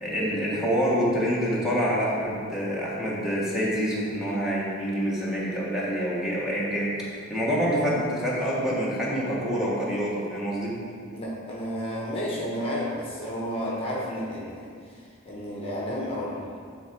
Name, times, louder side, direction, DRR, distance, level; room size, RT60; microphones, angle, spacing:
voice 1, 0.0-10.7, equal, 5° right, -7 dB, 1.3 m, -26 dB
voice 2, 11.1-14.7 15.2-16.6, equal, 30° left, -5 dB, 1.1 m, -31 dB
9.6 x 3.6 x 4.6 m, 2.2 s
head